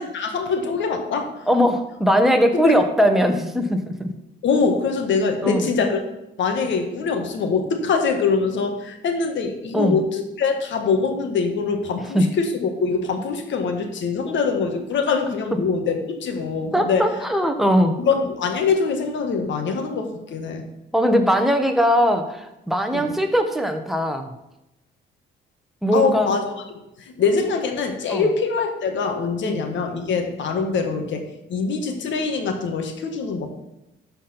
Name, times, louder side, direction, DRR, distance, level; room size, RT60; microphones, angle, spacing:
voice 1, 0.0-1.4 2.5-2.8 4.4-6.0 6.4-17.1 18.0-20.6 22.9-23.1 25.9-26.4 26.7-26.8 27.2-33.5, left 5 dB, 70° left, 5 dB, 1.6 m, -23 dB
voice 2, 1.5-4.1 5.4-5.7 9.7-10.0 12.1-12.3 16.7-18.0 20.9-24.3 25.8-26.3 28.1-28.2 29.4-29.6, equal, ahead, 5 dB, 1.3 m, -20 dB
12.0 x 4.5 x 5.7 m, 0.92 s
cardioid pair, 90°, 20 cm